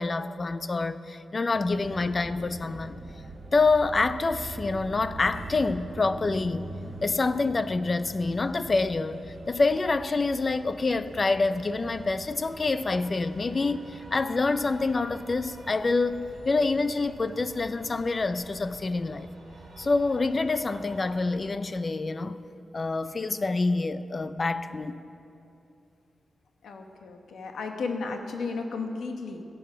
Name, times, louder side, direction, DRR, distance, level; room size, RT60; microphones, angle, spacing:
voice 1, 0.0-3.0 3.5-6.7 7.0-19.3 19.8-22.4 22.7-25.0, left 3 dB, 30° left, 0.4 m, -27 dB
sound 1, 1.5-21.4, right 2 dB, 55° right, 3.0 m, -44 dB
voice 2, 26.6-29.4, left 4 dB, 85° left, 1.1 m, -34 dB
16.5 x 7.8 x 5.6 m
wide cardioid pair, 155°, 0 cm